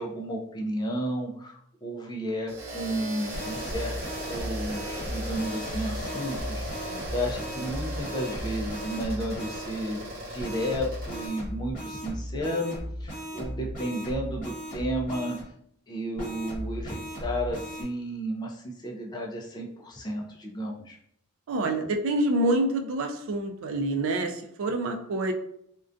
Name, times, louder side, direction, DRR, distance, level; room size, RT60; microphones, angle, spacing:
voice 1, 0.0-4.0 4.3-10.0 10.3-15.4 15.9-21.0, equal, 20° left, 0 dB, 0.3 m, -33 dB
sound 1, 2.5-11.3, equal, 45° right, 0.8 m, -37 dB
sound 2, 3.3-9.7 10.4-15.4 16.2-17.8, equal, 40° left, 0.9 m, -36 dB
voice 2, 21.5-25.3, right 1 dB, 65° right, 5 dB, 0.3 m, -27 dB
2.4 x 2.2 x 2.5 m, 0.70 s
head